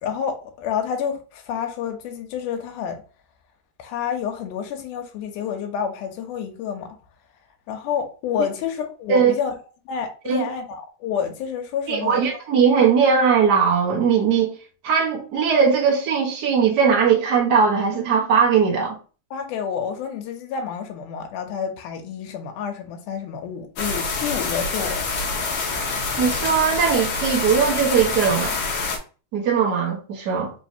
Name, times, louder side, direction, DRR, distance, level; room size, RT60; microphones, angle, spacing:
voice 1, 0.0-3.0 3.8-7.0 7.7-9.6 9.9-12.4 19.3-25.0, left 7 dB, 90° left, 2.2 m, -29 dB
voice 2, 11.9-14.5 14.8-19.0 26.2-28.6 29.3-30.5, right 6 dB, 90° right, 0.9 m, -19 dB
sound 1, 23.8-29.0, left 4 dB, 65° left, 1.4 m, -26 dB
4.7 x 3.1 x 2.7 m
omnidirectional pair, 3.5 m